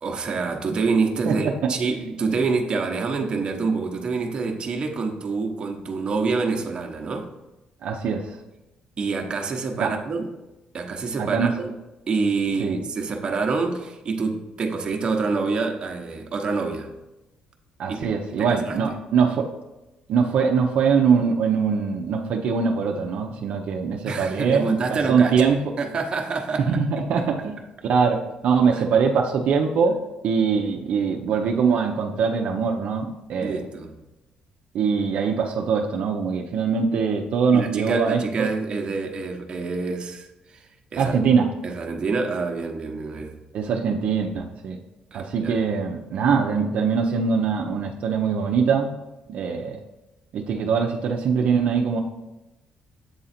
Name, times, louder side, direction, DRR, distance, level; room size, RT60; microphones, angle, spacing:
voice 1, 0.0-7.3 9.0-10.3 10.7-11.7 12.1-16.9 17.9-18.1 18.3-18.8 24.0-25.5 25.8-26.8 27.2-27.3 28.7-28.8 33.4-33.9 37.5-40.7 40.9-41.3 41.6-43.4 45.1-45.6, right 4 dB, 35° right, 2 dB, 1.0 m, -27 dB
voice 2, 7.8-8.4 9.8-9.9 11.2-11.5 12.6-12.8 17.8-19.5 20.1-24.7 25.1-25.6 26.7-27.5 27.8-30.0 30.2-33.6 34.7-38.5 41.0-41.5 43.5-44.8 45.1-48.9 49.3-49.8 50.3-52.0, right 6 dB, 65° right, 1 dB, 0.7 m, -22 dB
7.9 x 3.9 x 4.2 m, 1.0 s
cardioid pair, 135°, 3 cm